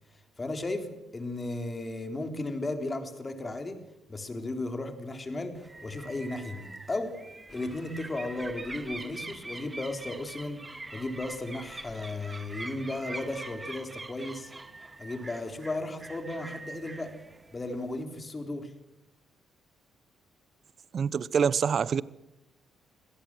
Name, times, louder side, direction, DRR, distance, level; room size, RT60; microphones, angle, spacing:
voice 1, 0.1-3.8 4.1-7.2 7.5-14.5 15.0-17.2 17.5-18.8, left 2 dB, 25° left, 3.7 m, -35 dB
sound 1, 5.5-18.0, right 2 dB, 20° right, 1.3 m, -44 dB
sound 2, 7.5-13.8, left 4 dB, 50° left, 4.9 m, -57 dB
voice 2, 20.9-22.0, right 6 dB, 50° right, 0.9 m, -25 dB
25.5 x 17.5 x 7.6 m
cardioid pair, 90°, 0 cm